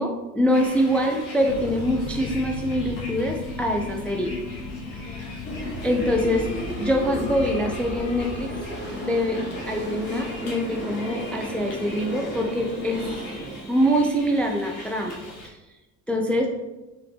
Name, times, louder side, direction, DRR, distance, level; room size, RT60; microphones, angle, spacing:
voice 1, 0.0-4.4 4.9-5.0 5.8-6.4 6.8-8.5 8.8-13.0 13.7-15.2 15.4-15.6 16.1-16.5, equal, 5° left, 2 dB, 0.4 m, -24 dB
Bus, 0.5-15.5, left 2 dB, 60° left, 1.3 m, -42 dB
sound 1, 1.5-14.3, left 4 dB, 75° left, 0.7 m, -37 dB
sound 2, 5.4-13.6, right 1 dB, 25° left, 1.4 m, -35 dB
3.8 x 3.3 x 3.4 m, 1.1 s
hypercardioid pair, 60°, 47 cm